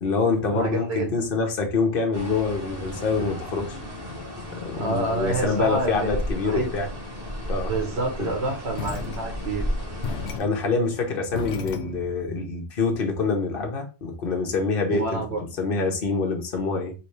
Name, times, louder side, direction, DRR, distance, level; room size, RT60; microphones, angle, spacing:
voice 1, 0.0-3.8 4.5-6.9 7.5-7.7 8.2-8.3 10.4-15.2 15.6-16.9, left 4 dB, 60° left, 2 dB, 1.2 m, -25 dB
voice 2, 0.5-1.1 4.8-6.2 6.4-6.7 7.6-9.6 14.9-15.4, right 2 dB, 75° right, 2 dB, 1.2 m, -28 dB
sound 1, 2.1-10.4, equal, 25° right, 1.3 m, -34 dB
sound 2, 8.8-12.3, left 5 dB, 85° left, 0.9 m, -36 dB
4.2 x 3.0 x 3.2 m, 0.30 s
omnidirectional pair, 1.1 m